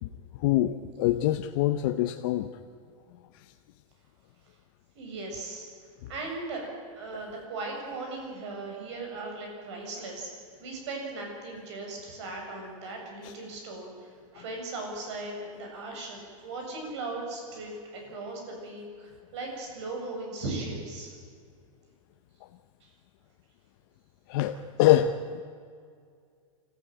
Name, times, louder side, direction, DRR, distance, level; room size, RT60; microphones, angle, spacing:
voice 1, 0.4-2.5 13.2-13.3 24.3-25.4, left 13 dB, 40° left, 6 dB, 0.8 m, -25 dB
voice 2, 4.9-5.7 6.1-6.6 7.0-10.3 10.6-21.1 22.8-22.9, right 2 dB, 55° right, 1 dB, 7.7 m, -38 dB
25.5 x 15.0 x 9.1 m, 2.2 s
supercardioid pair, 170°, 18 cm